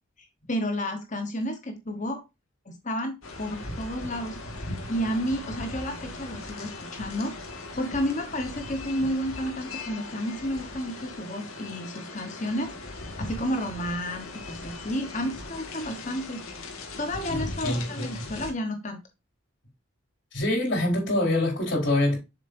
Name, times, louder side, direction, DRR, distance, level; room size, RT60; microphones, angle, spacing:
voice 1, 0.5-2.2 2.6-4.4 4.9-7.3 7.8-12.7 13.2-16.4 17.0-19.0, equal, 35° left, 1.1 m, -31 dB
sound 1, 3.2-18.5, left 2 dB, 90° left, 2.0 m, -39 dB
voice 2, 17.3-18.0 20.3-22.2, left 1 dB, 60° left, 4.6 m, -25 dB
7.4 x 6.8 x 2.6 m
head